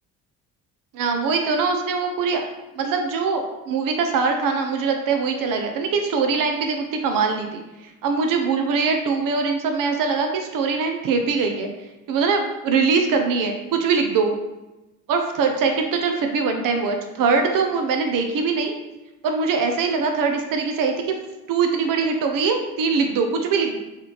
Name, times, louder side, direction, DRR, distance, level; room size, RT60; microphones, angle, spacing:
voice 1, 0.9-2.5 2.8-11.7 12.1-14.3 15.1-18.7 19.2-20.9 21.5-23.8, right 4 dB, 65° right, 4 dB, 0.5 m, -22 dB
3.3 x 2.4 x 2.9 m, 1.0 s
supercardioid pair, 60°, 36 cm